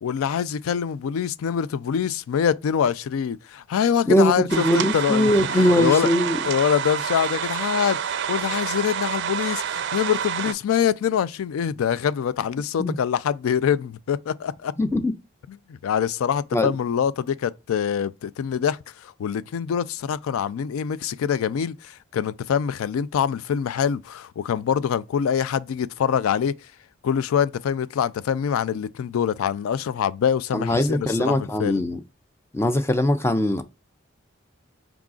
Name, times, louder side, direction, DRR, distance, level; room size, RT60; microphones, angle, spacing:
voice 1, 0.0-6.1 6.5-14.7 15.8-26.5 27.0-31.8, left 8 dB, 85° left, 0.3 m, -24 dB
voice 2, 4.1-6.4 12.8-13.0 14.8-15.1 16.5-16.7 30.5-32.0 32.5-33.6, left 1 dB, 10° left, 0.4 m, -21 dB
sound 1, 4.5-10.5, right 8 dB, 55° right, 0.4 m, -28 dB
4.8 x 3.6 x 2.3 m
head